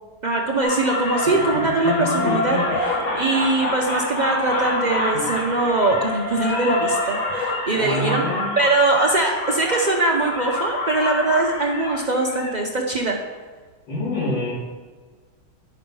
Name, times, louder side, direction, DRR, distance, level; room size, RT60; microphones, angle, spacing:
voice 1, 0.2-8.2 8.6-13.2, right 2 dB, 75° right, -1 dB, 0.4 m, -22 dB
sound 1, 0.6-12.6, left 2 dB, 55° left, 1.7 m, -26 dB
voice 2, 7.7-8.4 13.9-14.5, left 1 dB, 85° left, -8 dB, 3.7 m, -25 dB
9.8 x 5.4 x 5.4 m, 1.4 s
omnidirectional pair, 1.9 m